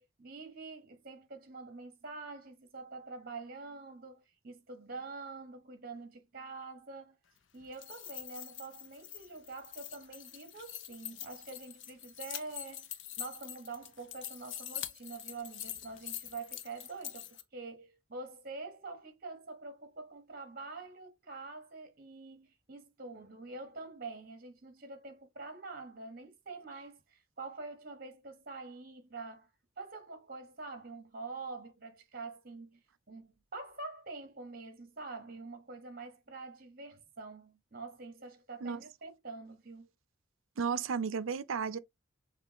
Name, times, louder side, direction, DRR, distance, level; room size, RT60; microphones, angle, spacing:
voice 1, 0.0-7.2 7.5-12.9 13.2-29.5 29.8-39.9, right 3 dB, 45° right, 1.2 m, -46 dB
sound 1, 7.6-17.4, left 11 dB, 60° left, 0.7 m, -44 dB
voice 2, 40.6-41.8, right 6 dB, 75° right, 0.5 m, -33 dB
6.7 x 2.4 x 3.0 m
head